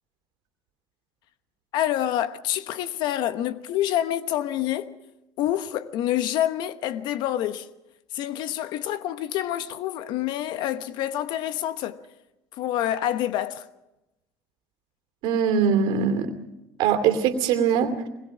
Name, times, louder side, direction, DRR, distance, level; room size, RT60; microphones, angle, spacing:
voice 1, 1.7-4.9 5.4-7.7 8.1-12.0 12.6-13.6, left 12 dB, 65° left, 1.1 m, -27 dB
voice 2, 15.2-16.3 16.8-18.1, right 7 dB, 70° right, 2.7 m, -22 dB
23.0 x 21.0 x 6.1 m
supercardioid pair, 80°, 8 cm